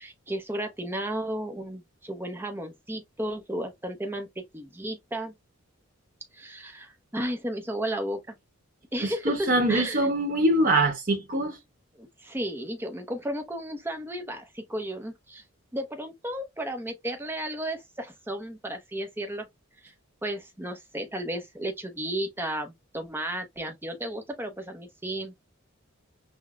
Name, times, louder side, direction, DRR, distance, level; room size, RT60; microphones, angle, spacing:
voice 1, 0.0-5.3 6.3-8.4 8.9-10.1 12.0-15.4 15.7-19.5 19.8-19.9 20.2-25.3, right 1 dB, 10° right, 0.6 m, -34 dB
voice 2, 9.0-11.6, right 1 dB, 40° right, 1.0 m, -24 dB
5.8 x 2.1 x 2.2 m
head